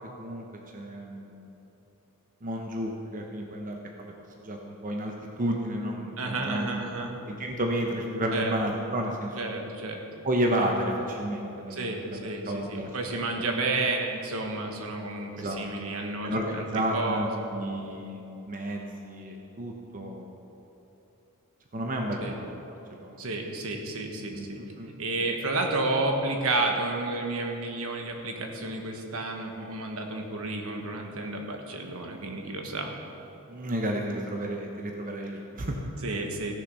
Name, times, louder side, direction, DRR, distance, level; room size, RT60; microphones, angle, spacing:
voice 1, 0.7-1.5 2.4-4.1 4.4-6.8 7.3-9.4 10.2-12.9 13.3-13.4 15.3-15.6 16.2-20.3 21.7-22.4 22.9-23.2 24.3-24.5 24.8-24.9 33.5-35.8, right 1 dB, 40° right, 1 dB, 0.9 m, -31 dB
voice 2, 6.2-7.1 8.3-8.5 9.4-10.0 11.7-16.6 16.9-17.3 22.2-22.3 23.2-24.6 25.0-32.9 36.0-36.5, right 2 dB, 70° right, 2 dB, 1.3 m, -31 dB
16.0 x 6.9 x 5.5 m, 3.0 s
head